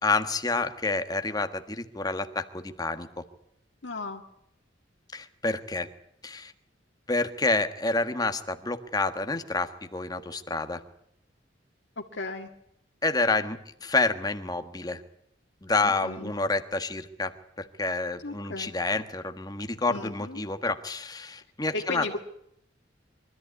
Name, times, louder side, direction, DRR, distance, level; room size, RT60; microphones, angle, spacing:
voice 1, 0.0-3.1 5.1-5.9 6.2-6.5 7.1-10.8 13.0-15.0 15.6-17.3 17.6-22.2, left 3 dB, 20° left, 8 dB, 1.4 m, -28 dB
voice 2, 3.8-4.2 12.0-12.5 15.8-16.3 18.2-18.7 19.9-20.4 21.7-22.2, left 3 dB, 80° left, 1 dB, 1.9 m, -35 dB
24.0 x 14.0 x 9.6 m, 0.74 s
head